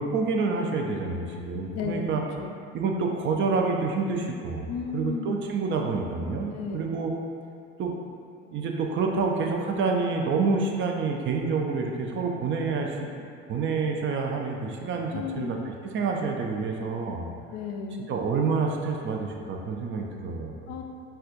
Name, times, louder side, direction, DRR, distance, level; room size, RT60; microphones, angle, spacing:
voice 1, 0.0-2.2 2.7-4.6 4.9-7.1 7.8-7.9 8.5-15.6 15.8-17.3 18.1-20.6, right 4 dB, 35° right, 1 dB, 0.4 m, -28 dB
voice 2, 1.7-2.1 2.3-2.5 4.7-5.5 6.5-6.9 15.0-15.6 17.5-18.1 20.7-20.8, left 6 dB, 45° left, 3 dB, 0.4 m, -34 dB
4.3 x 2.2 x 2.5 m, 2.3 s
hypercardioid pair, 70°, 37 cm